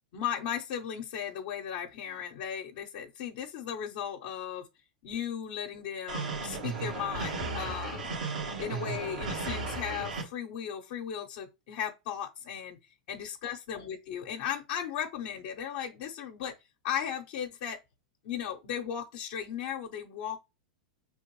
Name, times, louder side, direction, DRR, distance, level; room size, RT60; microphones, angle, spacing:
voice 1, 0.1-4.7 5.0-8.1 8.6-12.8 13.1-16.5 16.8-17.8 18.2-20.4, left 9 dB, 60° left, 0.8 m, -36 dB
sound 1, 6.1-10.2, right 4 dB, 85° right, 1.6 m, -35 dB
5.0 x 3.5 x 3.1 m
hypercardioid pair, 105°, 4 cm